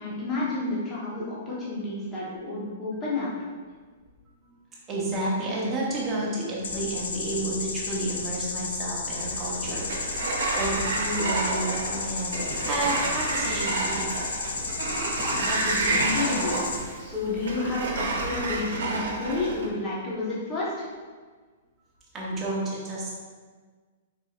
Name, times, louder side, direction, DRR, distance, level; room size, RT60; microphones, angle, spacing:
voice 1, 0.0-3.3 15.2-16.6 17.0-20.9, left 2 dB, 15° left, -7 dB, 1.0 m, -30 dB
voice 2, 4.9-14.3 22.1-23.1, right 1 dB, 15° right, -6 dB, 0.9 m, -31 dB
sound 1, 6.6-16.8, left 4 dB, 90° left, 0.6 m, -33 dB
Sliding door, 9.2-19.7, right 2 dB, 80° right, 0.8 m, -30 dB
4.8 x 4.1 x 2.4 m, 1.5 s
hypercardioid pair, 170°, 0 cm